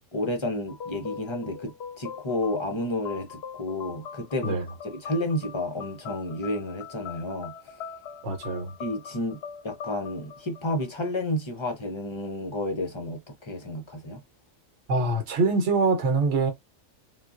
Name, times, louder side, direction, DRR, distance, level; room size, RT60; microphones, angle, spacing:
voice 1, 0.1-4.6 4.8-7.7 8.8-9.4 9.6-14.2, left 1 dB, 35° left, 0.5 m, -31 dB
sound 1, 0.7-11.3, left 7 dB, 65° left, 0.7 m, -42 dB
voice 2, 8.2-8.7 14.9-16.5, right 3 dB, 65° right, 1.1 m, -24 dB
3.6 x 2.2 x 2.4 m
omnidirectional pair, 1.3 m